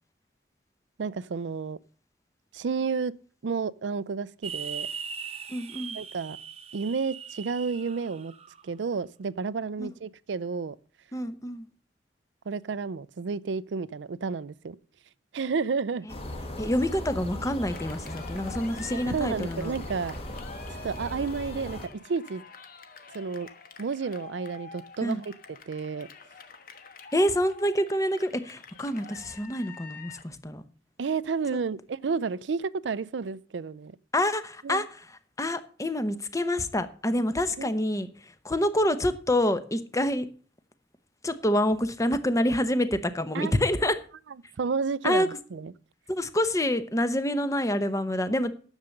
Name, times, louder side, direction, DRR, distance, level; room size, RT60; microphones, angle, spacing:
voice 1, 1.0-1.8 2.5-3.1 3.4-4.9 5.9-6.4 6.7-8.3 8.6-10.8 12.5-14.8 15.3-16.1 18.9-20.2 20.8-22.4 23.1-23.5 23.8-25.3 25.7-26.1 31.0-33.9 34.6-34.8 37.6-37.7 43.3-43.6 44.6-45.7, right 5 dB, 80° right, 0.5 m, -31 dB
sound 1, 4.4-8.6, right 6 dB, 35° right, 0.9 m, -39 dB
voice 2, 5.5-6.0 9.8-9.9 11.1-11.7 16.6-19.7 25.0-25.2 27.1-30.6 31.5-31.6 34.1-35.1 35.4-40.3 41.2-44.0 45.0-45.4 46.1-48.5, left 1 dB, 20° left, 0.9 m, -27 dB
sound 2, 16.1-21.9, left 1 dB, 35° left, 1.6 m, -38 dB
Cheering, 17.7-30.3, left 5 dB, 55° left, 1.2 m, -48 dB
10.5 x 7.2 x 6.4 m
head